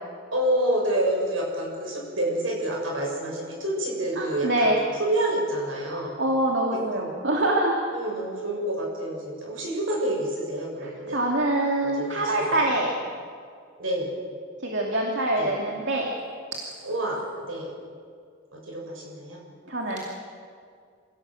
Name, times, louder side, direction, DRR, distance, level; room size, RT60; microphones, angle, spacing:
voice 1, 0.3-4.7 5.0-6.1 6.7-7.1 7.9-11.2 11.8-12.7 13.8-14.1 15.4-15.5 16.8-17.7 18.5-19.4, right 1 dB, 75° right, -1 dB, 7.1 m, -28 dB
voice 2, 4.2-4.8 5.9-7.9 10.8-12.9 14.6-16.1 19.7-20.0, right 1 dB, 60° right, -1 dB, 2.5 m, -25 dB
26.0 x 16.5 x 7.7 m, 2.2 s
head